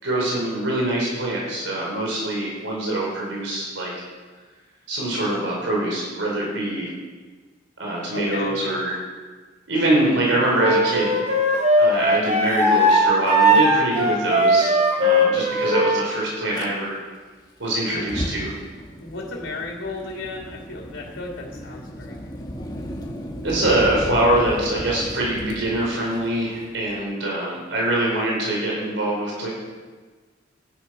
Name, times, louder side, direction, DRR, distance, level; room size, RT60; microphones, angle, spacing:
voice 1, 0.0-3.9 4.9-6.9 7.8-9.0 9.7-11.2 11.8-17.0 17.6-18.5 23.4-29.5, right 1 dB, 85° right, -3 dB, 4.8 m, -24 dB
voice 2, 8.1-8.6 17.9-18.1 19.0-22.1, left 2 dB, 90° left, -1 dB, 2.9 m, -34 dB
Wind instrument woodwind instrument, 10.6-16.0, equal, 40° right, 3.1 m, -18 dB
Fire, 16.5-16.7 17.9-27.0, equal, 20° left, 1.5 m, -35 dB
12.5 x 11.0 x 6.0 m, 1.4 s
head